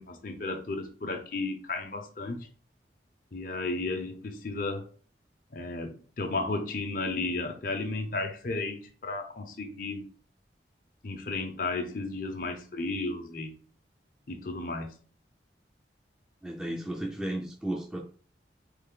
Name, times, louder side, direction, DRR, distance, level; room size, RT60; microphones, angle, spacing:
voice 1, 0.0-2.5 3.3-4.9 5.5-10.1 11.0-13.6 14.3-14.9, left 3 dB, 50° left, 0.6 m, -34 dB
voice 2, 16.4-18.0, right 1 dB, 5° right, 0.4 m, -34 dB
3.9 x 3.3 x 3.7 m
head